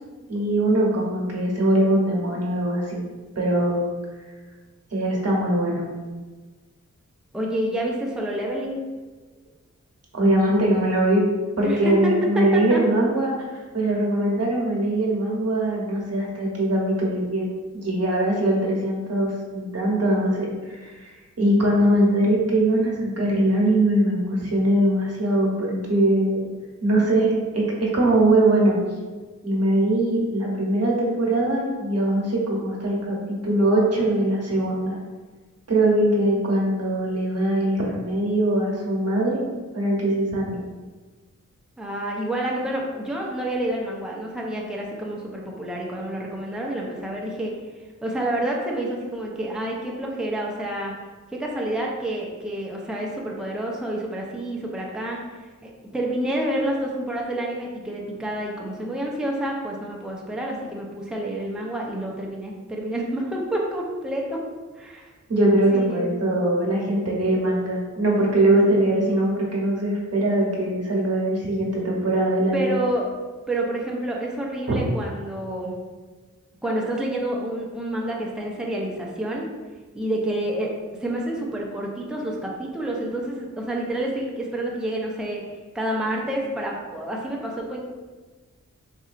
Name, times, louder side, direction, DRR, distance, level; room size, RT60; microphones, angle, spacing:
voice 1, 0.3-3.0 3.4-3.8 4.9-5.9 10.1-11.2 11.6-17.5 17.7-26.4 26.8-28.8 29.4-35.0 35.7-39.5 39.7-40.6 65.3-72.8 74.7-74.8, right 1 dB, 55° right, -3 dB, 1.1 m, -21 dB
voice 2, 7.3-8.8 11.6-12.8 41.8-47.5 48.0-50.9 51.3-55.2 55.6-64.4 64.8-65.1 65.7-66.1 72.5-73.1 73.5-75.7 76.6-79.4 79.9-80.7 81.0-85.4 85.7-87.8, right 1 dB, ahead, -2 dB, 0.6 m, -28 dB
4.1 x 2.6 x 2.5 m, 1.3 s
cardioid pair, 50°, 31 cm